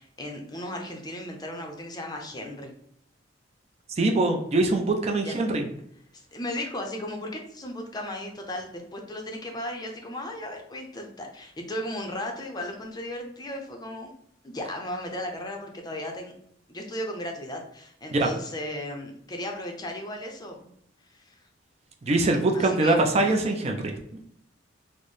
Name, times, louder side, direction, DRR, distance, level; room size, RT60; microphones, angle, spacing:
voice 1, 0.0-2.7 5.2-5.3 6.1-14.1 14.4-16.3 16.7-20.7 21.1-21.5 22.5-23.3, left 1 dB, 20° left, 2 dB, 0.5 m, -36 dB
voice 2, 4.0-5.6 18.1-18.3 22.1-24.2, right 2 dB, 35° right, 3 dB, 0.4 m, -23 dB
4.2 x 2.0 x 3.1 m, 0.72 s
head